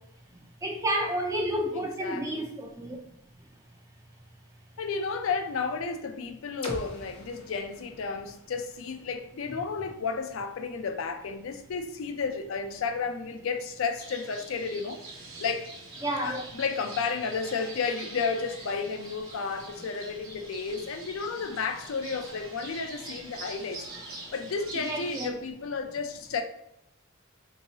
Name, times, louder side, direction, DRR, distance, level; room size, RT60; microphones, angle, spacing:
voice 1, 0.6-3.0 16.0-16.4 24.8-25.3, right 1 dB, 15° right, 0.4 m, -30 dB
voice 2, 1.7-2.4 4.8-15.0 15.4-15.7 16.2-23.9 24.3-26.4, left 5 dB, 70° left, 0.4 m, -32 dB
sound 1, 6.6-10.5, left 1 dB, 25° left, 0.6 m, -44 dB
sound 2, 14.0-25.3, right 2 dB, 75° right, 1.1 m, -44 dB
3.7 x 2.8 x 2.7 m
head